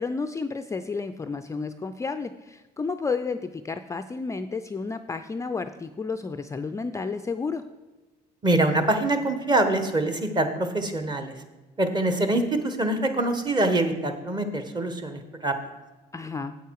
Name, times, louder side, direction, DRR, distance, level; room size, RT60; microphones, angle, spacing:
voice 1, 0.0-7.6 16.1-16.5, left 4 dB, 20° left, 8 dB, 0.4 m, -31 dB
voice 2, 8.4-11.3 11.8-15.5, right 2 dB, 25° right, 8 dB, 1.2 m, -24 dB
8.4 x 8.1 x 4.7 m, 1.2 s
cardioid pair, 110°, 17 cm